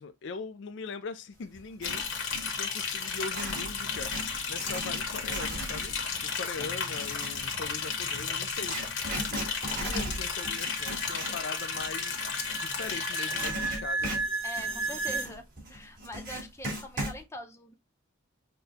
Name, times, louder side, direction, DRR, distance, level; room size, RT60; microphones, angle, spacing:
voice 1, 0.0-2.3 2.5-8.9 9.1-14.1, left 4 dB, 60° left, 0.4 m, -41 dB
Writing, 1.6-2.5 3.1-13.0 13.3-17.2, right 1 dB, 45° right, 2.5 m, -38 dB
Liquid, 1.8-13.5, left 5 dB, 75° left, 1.1 m, -34 dB
sound 1, 8.4-15.3, right 3 dB, 75° right, 1.6 m, -36 dB
voice 2, 14.4-17.7, left 1 dB, 15° left, 0.6 m, -43 dB
6.5 x 2.2 x 2.7 m
head